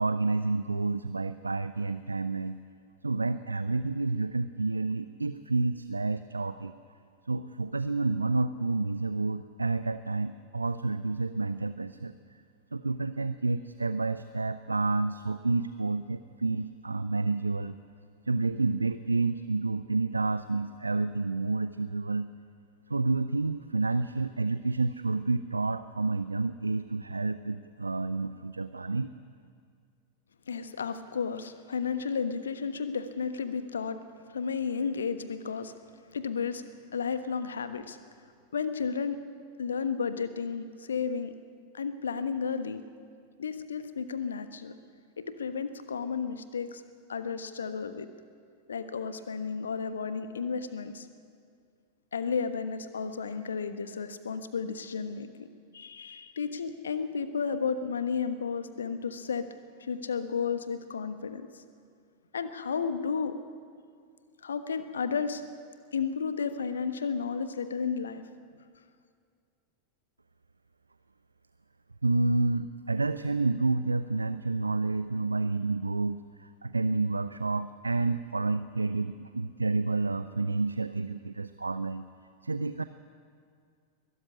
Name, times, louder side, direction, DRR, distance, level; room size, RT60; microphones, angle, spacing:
voice 1, 0.0-2.6 3.0-6.7 7.3-12.1 12.7-17.8 18.3-22.3 22.9-29.1 72.0-82.1 82.4-82.8, right 3 dB, 80° right, 13 dB, 0.5 m, -29 dB
voice 2, 30.5-34.0 34.3-35.7 36.1-36.6 36.9-38.0 38.5-39.2 39.6-41.3 41.7-42.8 43.4-44.7 45.2-46.8 47.1-48.1 48.7-51.1 52.1-55.5 55.7-59.5 59.8-61.6 62.3-63.3 64.4-65.4 65.9-68.2, left 6 dB, 70° left, 11 dB, 1.2 m, -32 dB
21.5 x 13.5 x 9.8 m, 2.2 s
figure-of-eight pair, 90°, 0 cm